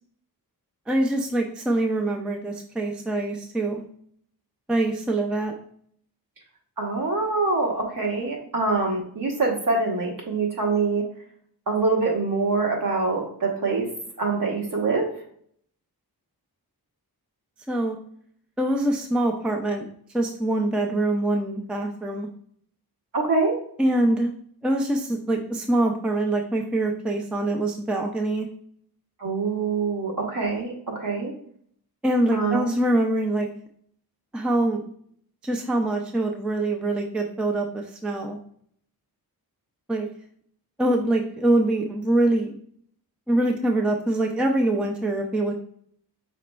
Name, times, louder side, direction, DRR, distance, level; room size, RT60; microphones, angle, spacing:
voice 1, 0.9-3.8 4.7-5.5 17.7-18.0 18.6-19.9 20.1-22.3 23.8-24.3 24.6-28.5 32.0-33.5 34.3-34.8 35.4-38.4 39.9-40.1 40.8-42.5 43.3-45.5, right 1 dB, 5° right, 2 dB, 0.4 m, -24 dB
voice 2, 6.8-11.1 11.7-13.9 14.2-15.1 23.1-23.6 29.2-31.3 32.3-32.7, right 3 dB, 60° right, -1 dB, 1.2 m, -24 dB
5.0 x 4.1 x 2.2 m, 0.63 s
wide cardioid pair, 165°, 38 cm